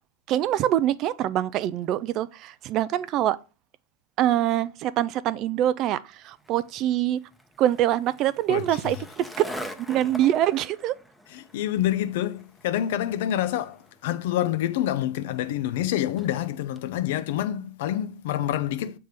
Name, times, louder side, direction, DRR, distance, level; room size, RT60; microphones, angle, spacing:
voice 1, 0.3-3.4 4.2-7.2 7.6-9.5 9.9-10.9, right 12 dB, 45° right, 0.3 m, -24 dB
Skateboard, 6.3-16.9, equal, 5° left, 0.8 m, -45 dB
voice 2, 11.3-19.0, left 12 dB, 60° left, 0.4 m, -27 dB
6.4 x 3.4 x 5.1 m
hypercardioid pair, 100°, 0 cm